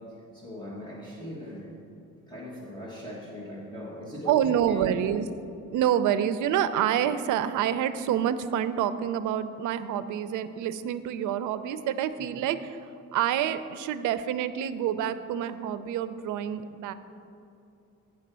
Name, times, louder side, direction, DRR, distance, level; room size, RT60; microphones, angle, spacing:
voice 1, 0.0-1.8 2.3-5.1 12.3-12.4, left 1 dB, 15° left, -6 dB, 1.2 m, -40 dB
voice 2, 4.3-5.3 5.7-12.8 13.1-16.9, right 10 dB, 80° right, 12 dB, 0.5 m, -27 dB
7.8 x 5.2 x 6.7 m, 2.6 s
cardioid pair, 175°, 30 cm